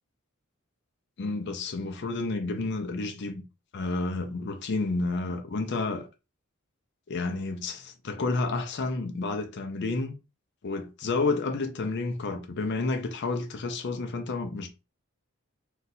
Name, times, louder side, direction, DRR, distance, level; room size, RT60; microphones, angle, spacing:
voice 1, 1.2-3.4 3.7-6.1 7.1-10.1 10.6-14.7, left 3 dB, 50° left, 0.5 m, -30 dB
2.7 x 2.3 x 4.0 m
head